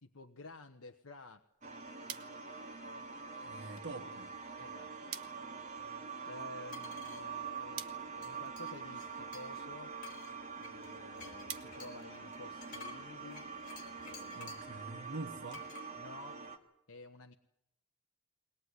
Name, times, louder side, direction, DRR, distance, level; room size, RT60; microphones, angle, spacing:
voice 1, 0.0-1.5 4.6-4.9 5.2-5.5 6.2-7.8 8.1-9.9 10.6-13.5 14.0-14.7 15.9-16.4 16.9-17.3, left 2 dB, 80° left, 1.2 m, -52 dB
sound 1, 1.5-12.8, right 10 dB, 80° right, 1.5 m, -53 dB
sound 2, 1.6-16.6, right 5 dB, 35° right, 2.2 m, -45 dB
voice 2, 3.4-4.3 5.8-5.9 14.3-15.7, right 2 dB, 55° right, 1.3 m, -45 dB
sound 3, 6.7-7.2 8.2-9.6 10.0-14.7 15.5-15.9, left 4 dB, 40° left, 5.7 m, -52 dB
22.0 x 19.5 x 9.7 m
head